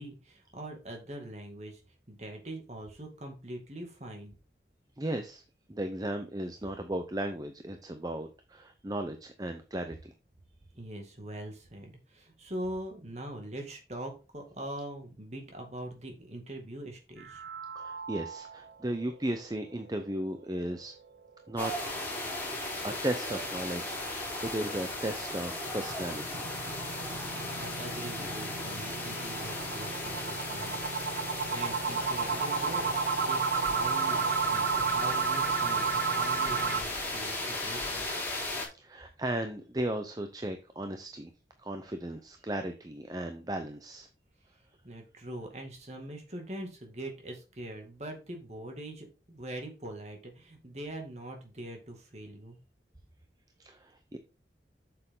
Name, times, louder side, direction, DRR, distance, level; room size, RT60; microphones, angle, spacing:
voice 1, 0.0-1.8 2.1-4.3 10.7-17.4 27.2-38.1 44.8-52.6, right 1 dB, 40° right, 2 dB, 2.1 m, -42 dB
voice 2, 5.0-5.4 5.7-10.1 17.7-20.9 21.5-22.0 22.8-26.4 38.7-41.3 41.6-44.1 53.6-54.2, right 1 dB, 20° right, 6 dB, 0.6 m, -36 dB
sound 1, 17.2-18.7 19.1-19.2 19.6-19.7 20.1-20.2 25.0-36.8, right 5 dB, 70° right, 0.7 m, -32 dB
sound 2, 21.6-38.7, left 2 dB, 10° left, 3.8 m, -36 dB
8.1 x 6.8 x 3.8 m, 0.32 s
head